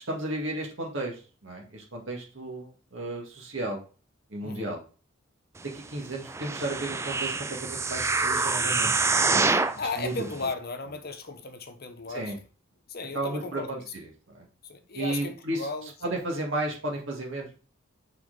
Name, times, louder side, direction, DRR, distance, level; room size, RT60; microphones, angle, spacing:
voice 1, 0.1-3.8 4.3-4.8 5.7-8.9 9.3-9.5 10.0-10.1 12.1-12.4 13.1-13.8 14.3-14.5 14.9-15.6 16.0-17.6, right 1 dB, 65° right, 2.0 m, -33 dB
voice 2, 4.4-4.8 9.5-12.3 12.9-13.9 14.6-16.2, left 3 dB, 50° left, 1.0 m, -36 dB
sound 1, 6.3-9.8 10.4-10.5, right 3 dB, 15° right, 0.3 m, -26 dB
6.6 x 4.5 x 3.8 m
head